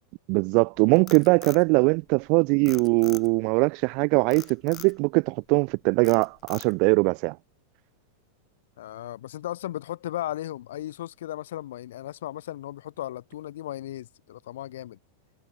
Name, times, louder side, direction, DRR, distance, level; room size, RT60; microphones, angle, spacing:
voice 1, 0.3-7.4, right 33 dB, 45° right, 0.3 m, -21 dB
Frog, 0.8-2.3 2.7-3.5 4.3-5.0 5.4-5.7 6.0-7.0, left 13 dB, 30° left, 7.0 m, -43 dB
voice 2, 8.8-15.0, left 13 dB, 60° left, 1.8 m, -36 dB
figure-of-eight pair, 90°, 0 cm